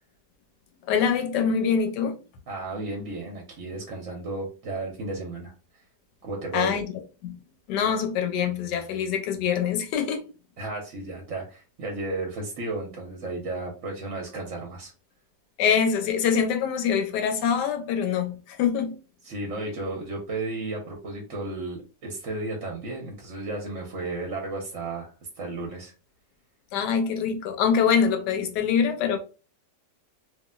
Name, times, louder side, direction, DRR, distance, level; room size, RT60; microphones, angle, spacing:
voice 1, 0.9-2.1 6.5-6.9 7.2-7.4 7.7-10.3 15.6-19.0 26.7-29.2, left 7 dB, 80° left, 1.3 m, -24 dB
voice 2, 2.5-5.5 6.2-6.7 10.6-14.9 19.2-25.9, right 2 dB, 55° right, 0.9 m, -33 dB
3.0 x 2.5 x 2.2 m
omnidirectional pair, 1.8 m